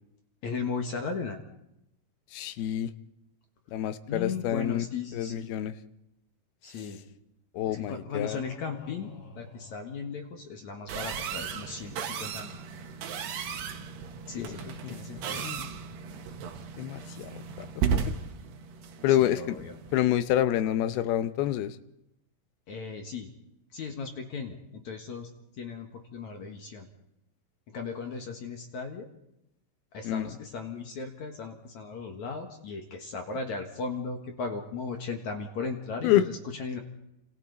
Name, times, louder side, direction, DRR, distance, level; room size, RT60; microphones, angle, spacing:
voice 1, 0.4-1.4 4.1-5.5 6.6-7.0 7.7-9.1 9.4-12.6 14.3-15.4 19.1-19.7 22.7-23.3 23.7-26.9 27.7-29.1 29.9-36.8, left 5 dB, 55° left, 4 dB, 2.6 m, -37 dB
voice 2, 2.3-2.9 3.7-4.9 5.1-5.7 6.7-6.8 7.5-8.4 14.4-15.7 16.8-18.0 19.0-19.6 19.9-21.8 30.0-30.3 36.0-36.2, left 12 dB, 80° left, 11 dB, 2.8 m, -28 dB
sound 1, 8.1-10.6, left 3 dB, 35° left, 2.5 m, -48 dB
sound 2, 10.9-20.0, right 6 dB, 90° right, 3.7 m, -35 dB
29.0 x 27.0 x 4.2 m, 0.83 s
omnidirectional pair, 4.5 m